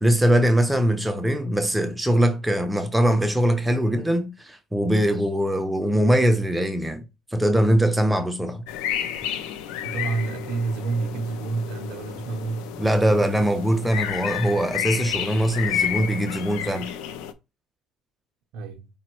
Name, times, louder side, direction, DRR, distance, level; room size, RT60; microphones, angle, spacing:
voice 1, 0.0-7.0 7.3-8.6 12.8-16.9, equal, 10° right, 0.5 m, -22 dB
sound 1, 8.7-17.3, left 9 dB, 90° left, 0.4 m, -31 dB
voice 2, 9.8-12.8 18.5-18.9, right 4 dB, 75° right, 0.6 m, -29 dB
5.0 x 2.0 x 4.4 m
cardioid pair, 110°, 0 cm